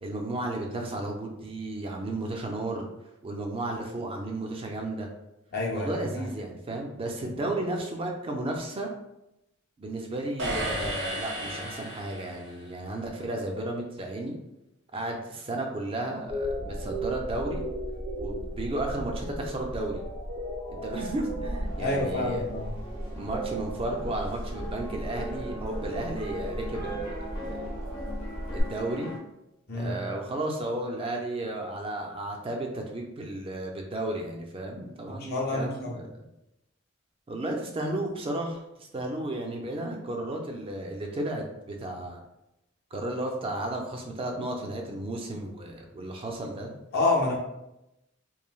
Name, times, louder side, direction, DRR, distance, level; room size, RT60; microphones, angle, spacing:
voice 1, 0.0-2.9 3.2-5.1 5.7-8.9 9.8-14.4 14.9-17.6 18.2-20.0 20.7-22.5 23.2-27.6 28.5-29.1 29.7-36.0 37.3-42.2 42.9-46.7, right 1 dB, 25° right, 1 dB, 0.3 m, -33 dB
voice 2, 5.5-6.3 7.2-7.3 21.8-22.7 29.7-30.0 35.1-36.0 46.9-47.4, left 2 dB, 50° left, -2 dB, 0.6 m, -28 dB
sound 1, 10.4-12.6, right 1 dB, 90° right, 0.9 m, -33 dB
sound 2, 16.3-28.6, equal, 65° right, 0.7 m, -35 dB
sound 3, 21.6-29.2, equal, 85° left, 0.9 m, -42 dB
3.1 x 2.6 x 2.2 m, 0.89 s
head